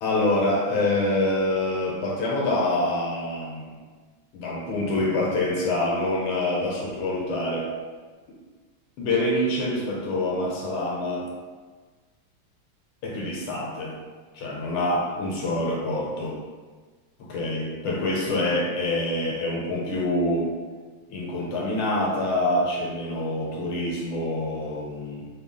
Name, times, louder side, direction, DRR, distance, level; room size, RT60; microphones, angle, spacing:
voice 1, 0.0-3.8 4.3-7.7 8.3-8.4 9.0-11.3 13.0-14.0 14.3-16.4 17.2-20.5 21.1-25.3, left 1 dB, 85° left, -3 dB, 1.6 m, -26 dB
3.6 x 2.2 x 3.6 m, 1.4 s
omnidirectional pair, 2.2 m